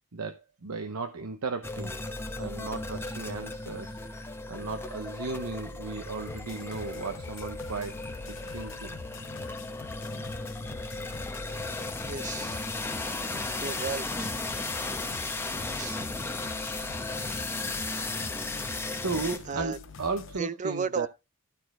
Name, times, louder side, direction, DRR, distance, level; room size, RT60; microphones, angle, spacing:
voice 1, 0.1-2.0 2.4-4.1 4.5-9.0 18.9-21.1, right 4 dB, 75° right, 0.9 m, -35 dB
sound 1, 1.6-19.4, left 2 dB, 10° left, 0.9 m, -35 dB
sound 2, 6.3-20.4, left 5 dB, 55° left, 0.6 m, -45 dB
voice 2, 12.0-12.6 13.6-14.3 15.7-16.0 19.5-19.8 20.4-21.1, right 5 dB, 35° right, 0.4 m, -34 dB
12.5 x 4.4 x 4.8 m
head